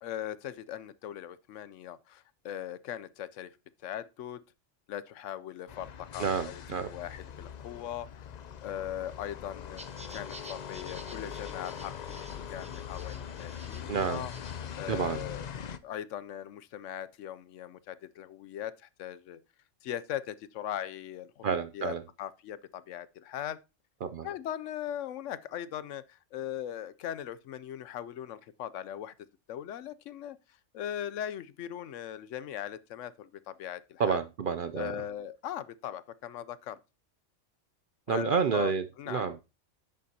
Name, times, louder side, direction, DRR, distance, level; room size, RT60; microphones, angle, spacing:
voice 1, 0.0-3.5 3.8-4.4 4.9-8.3 8.6-14.3 14.8-15.5 15.8-19.4 19.8-21.4 21.7-23.6 24.2-29.1 29.5-30.4 30.7-34.2 34.7-36.8 38.1-38.7 39.0-39.2, left 10 dB, 75° left, 0.9 m, -39 dB
sound 1, 5.7-15.8, left 8 dB, 55° left, 0.5 m, -42 dB
voice 2, 6.2-6.9 13.9-14.2 14.9-15.2 21.4-22.0 24.0-24.3 34.0-34.9 38.1-39.4, right 6 dB, 60° right, 0.6 m, -30 dB
sound 2, 9.8-14.7, right 1 dB, 5° right, 0.7 m, -51 dB
10.5 x 7.6 x 2.8 m
omnidirectional pair, 1.3 m